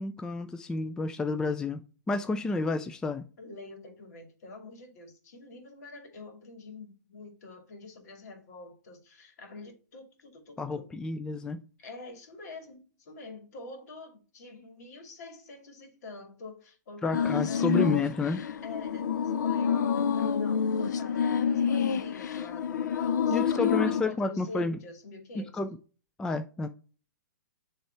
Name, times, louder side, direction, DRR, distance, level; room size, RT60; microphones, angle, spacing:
voice 1, 0.0-3.3 10.6-11.6 17.0-18.4 23.3-24.8 25.4-25.7 26.2-26.7, left 3 dB, 5° left, 0.3 m, -30 dB
voice 2, 3.4-10.9 11.8-18.0 18.6-25.6, left 3 dB, 65° left, 2.3 m, -46 dB
sound 1, 17.1-24.0, left 7 dB, 80° left, 0.6 m, -28 dB
7.4 x 3.4 x 4.4 m
hypercardioid pair, 135°, 10 cm